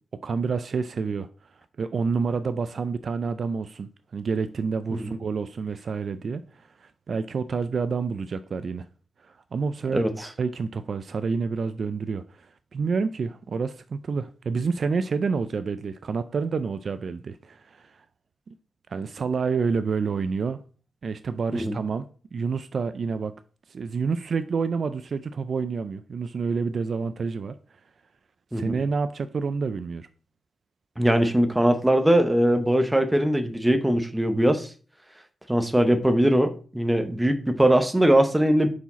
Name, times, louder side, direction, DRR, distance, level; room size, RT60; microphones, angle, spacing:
voice 1, 0.2-1.3 1.8-8.9 9.2-18.0 18.5-18.6 18.9-20.6 21.0-22.1 22.3-23.3 23.7-27.5 28.5-30.1, right 5 dB, 45° right, 0.3 m, -28 dB
voice 2, 9.9-10.3 21.5-21.8 28.5-28.8 31.0-34.7 35.5-38.7, right 1 dB, 5° right, 0.7 m, -21 dB
5.7 x 4.8 x 4.0 m
wide cardioid pair, 165°, 0 cm